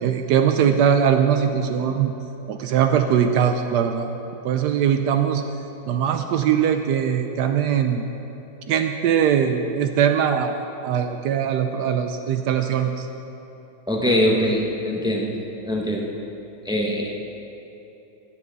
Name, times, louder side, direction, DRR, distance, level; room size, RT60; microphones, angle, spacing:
voice 1, 0.0-2.1 2.5-4.1 4.4-5.4 5.9-8.0 8.7-10.6 10.8-13.1, right 8 dB, 75° right, 6 dB, 1.1 m, -21 dB
voice 2, 13.9-15.3 15.6-16.1 16.6-17.1, equal, 5° right, -1 dB, 0.5 m, -22 dB
16.5 x 7.4 x 4.0 m, 2.9 s
omnidirectional pair, 1.9 m